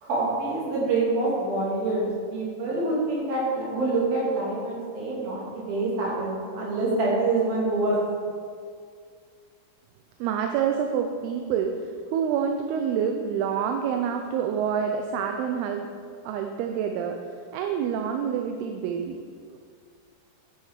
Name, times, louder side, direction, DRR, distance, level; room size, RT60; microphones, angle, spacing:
voice 1, 0.0-8.0, right 2 dB, 65° right, -6 dB, 4.4 m, -26 dB
voice 2, 10.2-15.9 16.2-17.2 17.5-19.2 19.5-19.6, right 7 dB, 80° right, 4 dB, 2.5 m, -27 dB
9.8 x 7.7 x 5.7 m, 2.1 s
omnidirectional pair, 4.7 m